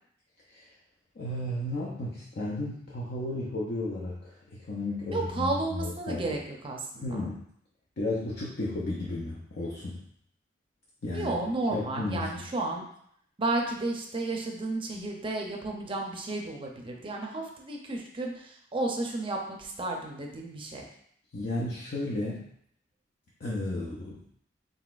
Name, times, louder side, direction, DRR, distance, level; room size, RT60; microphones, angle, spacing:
voice 1, 1.2-6.4 7.0-7.4 8.0-10.0 11.0-11.3 11.7-12.4 21.3-22.5 23.4-24.2, left 1 dB, 55° left, -5 dB, 0.6 m, -33 dB
voice 2, 5.1-7.3 11.1-12.8 13.4-20.8, right 2 dB, 30° right, 1 dB, 0.5 m, -32 dB
3.9 x 3.7 x 2.4 m, 0.68 s
head